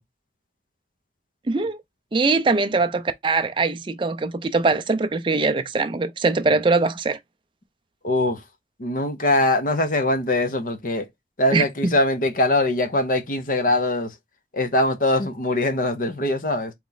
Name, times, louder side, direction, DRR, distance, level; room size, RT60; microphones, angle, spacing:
voice 1, 1.5-1.8 2.1-7.2 11.5-11.9, right 3 dB, 25° right, 0.4 m, -22 dB
voice 2, 8.0-8.4 8.8-11.1 11.4-14.1 14.5-16.7, left 1 dB, 45° left, 0.8 m, -22 dB
4.2 x 3.0 x 3.8 m
head